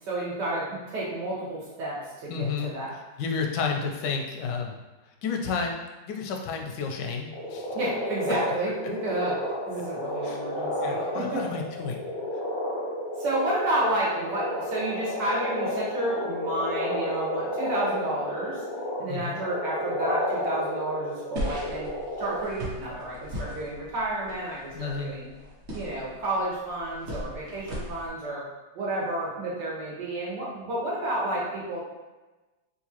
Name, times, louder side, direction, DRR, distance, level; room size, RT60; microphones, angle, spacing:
voice 1, 0.0-2.9 7.7-9.4 9.7-11.4 13.2-18.6 19.0-21.9 22.2-25.3 25.7-28.4 28.8-31.8, right 1 dB, 85° right, -6 dB, 1.7 m, -31 dB
voice 2, 2.3-2.7 3.2-4.7 5.2-5.8 6.1-7.7 10.2-10.4 10.8-12.0 19.1-19.4 24.7-25.1, left 5 dB, 85° left, 2 dB, 1.2 m, -31 dB
sound 1, 7.3-22.4, left 1 dB, 55° left, 0.6 m, -31 dB
sound 2, 21.3-28.1, equal, 50° right, 1.0 m, -38 dB
3.9 x 2.4 x 2.9 m, 1.1 s
omnidirectional pair, 1.8 m